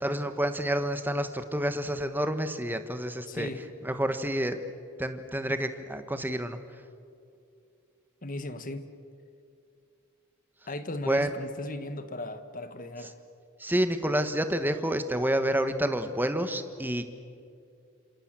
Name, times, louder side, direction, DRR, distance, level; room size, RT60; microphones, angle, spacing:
voice 1, 0.0-3.5 3.8-4.6 5.0-6.6 11.1-11.3 13.6-17.0, right 1 dB, 10° right, 1.3 m, -29 dB
voice 2, 3.3-3.7 8.2-8.9 10.7-13.2, left 1 dB, 40° left, 1.5 m, -37 dB
28.0 x 26.5 x 7.6 m
head